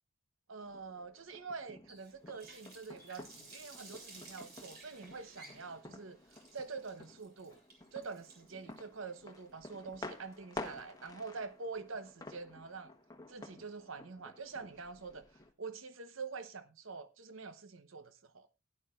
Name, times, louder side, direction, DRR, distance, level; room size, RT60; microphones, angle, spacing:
voice 1, 0.5-6.2 6.5-7.6 7.9-12.9 13.3-15.2 15.6-18.5, right 4 dB, 70° right, 1.0 m, -46 dB
sound 1, 0.6-15.5, left 2 dB, 20° left, 1.1 m, -51 dB
Water tap faucet, 1.9-10.8, right 2 dB, 50° right, 4.1 m, -56 dB
16.5 x 11.0 x 2.5 m
head